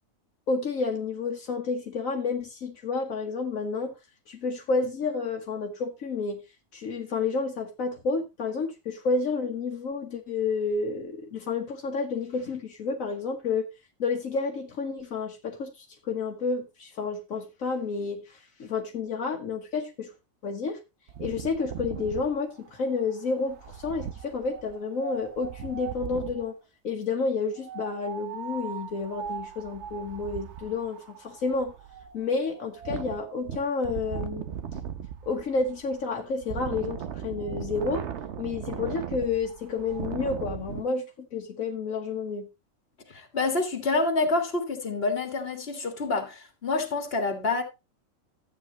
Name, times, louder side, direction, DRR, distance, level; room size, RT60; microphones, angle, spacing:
voice 1, 0.5-3.9 4.3-6.4 6.7-13.7 14.0-20.1 20.4-20.8 21.2-26.6 26.8-31.7 32.1-34.5 35.2-38.1 38.4-42.5, left 4 dB, 80° left, 1.6 m, -30 dB
Wind, 21.1-26.5 27.6-40.8, right 8 dB, 60° right, 1.0 m, -38 dB
voice 2, 43.1-47.6, left 3 dB, 45° left, 2.1 m, -27 dB
12.5 x 8.6 x 2.9 m
omnidirectional pair, 1.4 m